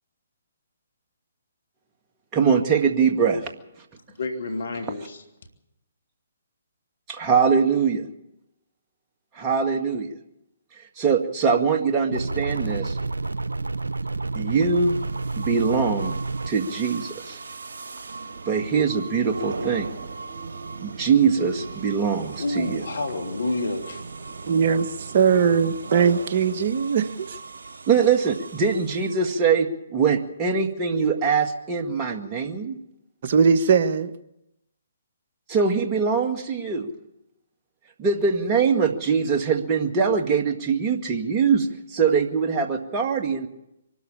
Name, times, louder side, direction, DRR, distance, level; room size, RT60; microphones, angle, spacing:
voice 1, 2.3-3.5 7.1-8.0 9.4-10.1 11.0-13.0 14.4-15.0 15.4-16.1 16.5-17.4 18.5-19.9 20.8-22.8 27.9-32.8 35.5-36.9 38.0-41.7 41.9-43.5, right 5 dB, 25° right, 2.0 m, -22 dB
voice 2, 4.1-5.2 22.4-24.0, left 2 dB, 70° left, 2.9 m, -29 dB
sound 1, 12.1-16.5, right 3 dB, 85° right, 0.7 m, -29 dB
sound 2, 14.6-29.4, right 4 dB, 65° right, 1.9 m, -38 dB
voice 3, 24.5-24.9 25.1-27.4 33.2-34.1, right 6 dB, 50° right, 1.2 m, -20 dB
24.0 x 13.0 x 8.8 m
figure-of-eight pair, 135°, 0 cm